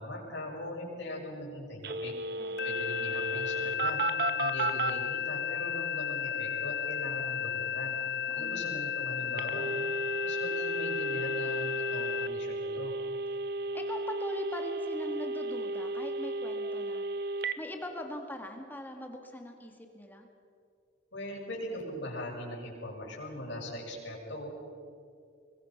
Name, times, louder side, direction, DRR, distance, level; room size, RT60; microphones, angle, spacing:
voice 1, 0.0-2.1 2.6-4.0 4.4-8.0 8.3-9.9 10.2-12.9 21.1-24.5, left 1 dB, 75° left, -2 dB, 7.1 m, -40 dB
Telephone, 1.8-4.9 9.4-17.6, right 2 dB, 55° right, 1.2 m, -34 dB
voice 2, 2.4-2.8 8.3-8.8 13.7-17.0 17.6-20.3, left 1 dB, 10° left, 3 dB, 2.1 m, -42 dB
sound 1, 2.6-12.3, left 8 dB, 55° left, 0.5 m, -34 dB
26.0 x 22.0 x 6.0 m, 2.4 s
head